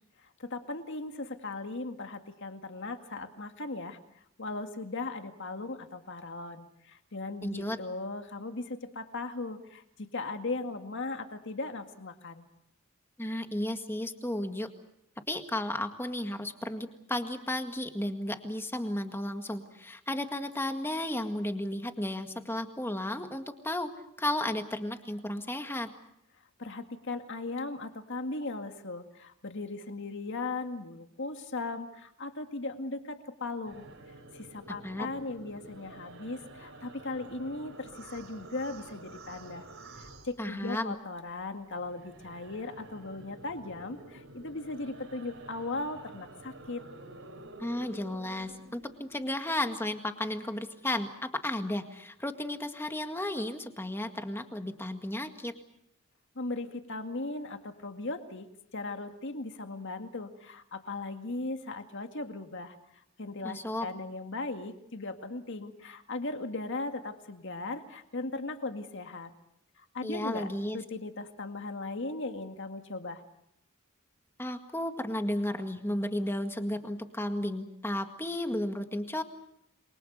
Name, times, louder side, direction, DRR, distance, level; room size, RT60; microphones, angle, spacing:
voice 1, 0.2-4.0 4.4-12.4 26.6-33.9 34.3-39.7 40.0-46.8 56.4-62.8 63.2-69.3 69.8-73.2, left 2 dB, 60° left, 6 dB, 2.0 m, -38 dB
voice 2, 7.4-7.8 13.2-14.7 15.3-23.9 24.2-25.9 34.8-35.1 40.4-40.9 47.6-55.5 63.4-63.9 70.0-70.8 74.4-79.2, left 1 dB, 10° left, 6 dB, 1.9 m, -33 dB
sound 1, 33.7-41.0 41.3-49.3, right 2 dB, 70° right, 4.4 m, -49 dB
28.5 x 23.5 x 6.7 m, 0.78 s
head